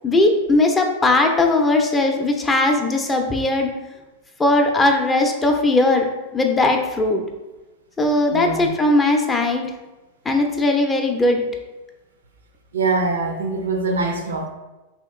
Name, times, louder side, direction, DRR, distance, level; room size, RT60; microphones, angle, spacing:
voice 1, 0.0-3.7 4.4-6.1 6.3-7.2 8.0-9.6 10.3-11.4, left 2 dB, 15° left, 3 dB, 0.5 m, -18 dB
voice 2, 8.3-8.7 12.7-14.5, right 3 dB, 80° right, 4 dB, 0.5 m, -23 dB
3.0 x 2.8 x 3.7 m, 1.1 s
hypercardioid pair, 100°, 0 cm